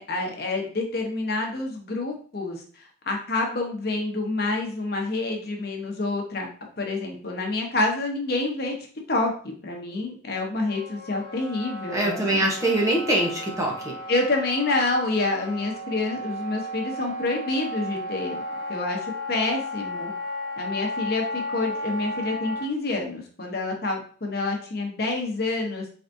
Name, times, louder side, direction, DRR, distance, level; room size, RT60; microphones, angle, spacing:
voice 1, 0.0-6.5 6.8-8.7 9.1-9.3 9.6-12.4 14.1-18.4 18.7-20.1 20.6-25.9, left 2 dB, 55° left, 1 dB, 1.0 m, -28 dB
Wind instrument woodwind instrument, 10.6-22.7, left 1 dB, 80° right, 1.0 m, -34 dB
voice 2, 11.9-14.0, right 1 dB, 15° right, -1 dB, 1.0 m, -23 dB
4.4 x 4.0 x 2.6 m, 0.43 s
head